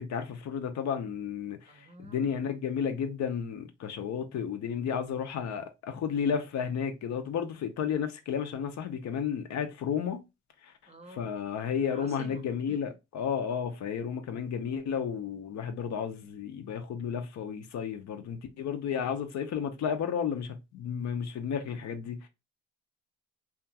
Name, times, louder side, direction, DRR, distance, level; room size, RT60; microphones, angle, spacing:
voice 1, 0.0-10.2 10.6-10.7 11.1-22.3, left 7 dB, 65° left, 0.6 m, -32 dB
voice 2, 1.7-2.3 10.9-11.3 11.9-12.8, right 1 dB, 20° right, 0.6 m, -50 dB
2.8 x 2.3 x 2.7 m
cardioid pair, 90°, 30 cm